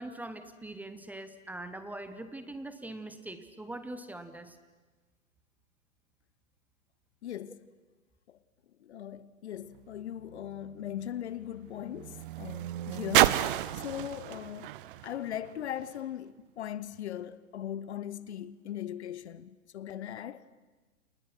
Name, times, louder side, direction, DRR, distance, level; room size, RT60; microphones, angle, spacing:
voice 1, 0.0-4.6, right 1 dB, 5° right, 1.1 m, -42 dB
voice 2, 7.2-7.7 8.3-8.4 8.8-14.8 15.0-20.5, left 11 dB, 50° left, 1.0 m, -39 dB
sound 1, 9.6-16.1 16.9-17.0, right 14 dB, 40° right, 0.9 m, -32 dB
30.0 x 28.5 x 6.1 m
figure-of-eight pair, 115°, 42 cm